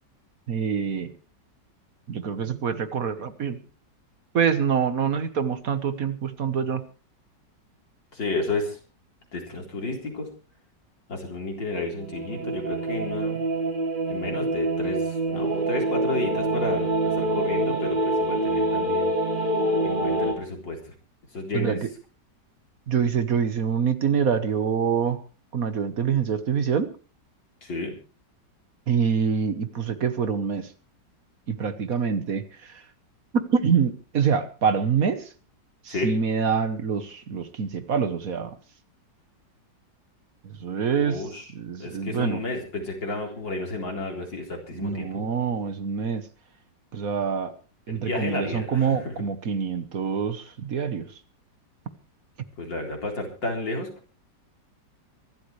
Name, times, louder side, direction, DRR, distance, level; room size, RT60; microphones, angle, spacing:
voice 1, 0.5-1.1 2.1-3.6 4.3-6.8 21.5-21.9 22.9-25.2 25.5-26.9 28.9-30.7 31.5-32.8 33.5-35.3 35.8-38.6 40.4-41.2 41.5-42.4 44.7-46.2 46.9-47.5 47.9-51.1, right 6 dB, 55° right, 11 dB, 1.5 m, -25 dB
voice 2, 8.1-8.8 9.3-10.3 11.1-13.4 14.1-19.1 19.8-20.9 21.3-21.8 27.6-27.9 35.9-36.1 41.0-41.4 41.8-45.2 47.9-49.1 52.6-53.9, left 2 dB, 90° left, 1 dB, 4.6 m, -31 dB
sound 1, 12.0-20.3, right 2 dB, 25° right, 3.8 m, -26 dB
24.5 x 12.5 x 3.3 m, 0.36 s
omnidirectional pair, 1.9 m